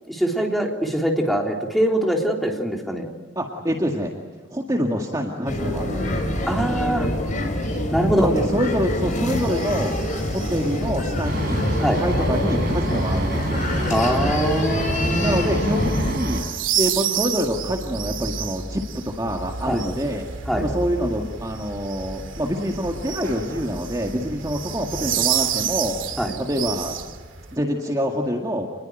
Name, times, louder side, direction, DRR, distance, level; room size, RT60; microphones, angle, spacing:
voice 1, 0.1-3.1 6.4-7.1 7.9-8.3 11.8-12.0 13.9-15.6 19.7-19.8 20.5-20.7 26.2-26.3, right 1 dB, ahead, 0 dB, 3.4 m, -23 dB
voice 2, 3.4-4.1 4.5-6.1 8.2-9.9 10.3-13.6 15.2-16.4 16.7-20.2 20.6-25.9 26.4-27.0 27.5-28.7, equal, 20° right, 1 dB, 2.0 m, -26 dB
sound 1, 5.5-16.1, left 1 dB, 40° left, 5.6 m, -25 dB
sound 2, 9.4-27.6, right 8 dB, 90° right, 2.3 m, -31 dB
sound 3, 11.2-16.4, right 1 dB, 50° right, 6.7 m, -27 dB
29.0 x 21.5 x 9.1 m, 1.4 s
head